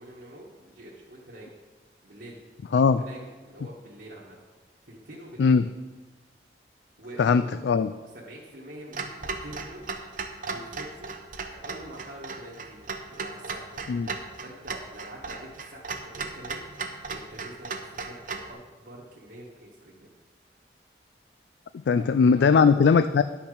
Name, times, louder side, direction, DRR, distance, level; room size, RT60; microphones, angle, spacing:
voice 1, 0.0-1.5 2.0-2.4 2.7-4.4 4.8-5.6 7.0-11.1 11.6-13.9 14.4-16.7 17.1-20.1 21.9-22.1 22.3-22.5, right 1 dB, 65° right, -6 dB, 1.6 m, -46 dB
voice 2, 7.2-7.9 13.9-14.1 21.9-23.2, left 5 dB, 80° left, 11 dB, 0.3 m, -20 dB
Clock, 8.9-18.5, right 4 dB, 50° right, 0.8 m, -37 dB
10.5 x 5.8 x 6.6 m, 1.3 s
head